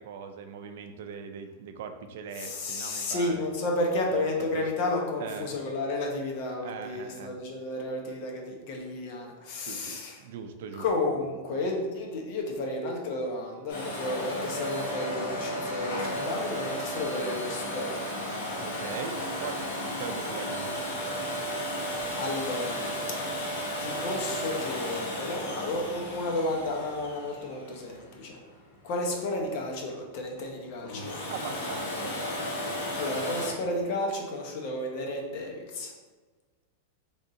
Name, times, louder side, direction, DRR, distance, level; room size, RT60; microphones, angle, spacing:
voice 1, 0.0-3.4 4.5-4.6 5.2-5.5 6.6-7.4 9.7-10.8 11.5-11.6 18.5-21.1 31.3-32.2, right 7 dB, 65° right, 7 dB, 0.4 m, -40 dB
voice 2, 2.4-10.2 10.8-18.3 21.8-23.0 23.4-28.4 28.8-31.2 32.8-35.9, left 2 dB, 50° left, 0 dB, 0.8 m, -32 dB
Domestic sounds home sounds, 13.7-28.4 30.8-33.5, equal, 80° left, 1.3 m, -34 dB
3.5 x 2.6 x 3.8 m, 1.4 s
supercardioid pair, 150°, 0 cm